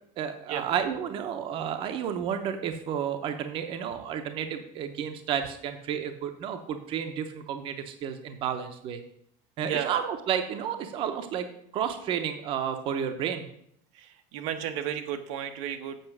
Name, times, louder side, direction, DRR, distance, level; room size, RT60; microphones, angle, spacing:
voice 1, 0.2-9.0 9.6-11.5 11.7-13.5, right 8 dB, 35° right, 7 dB, 0.7 m, -31 dB
voice 2, 13.9-16.0, right 9 dB, 85° right, 7 dB, 1.1 m, -33 dB
7.8 x 5.8 x 6.0 m, 0.68 s
cardioid pair, 180°, 16 cm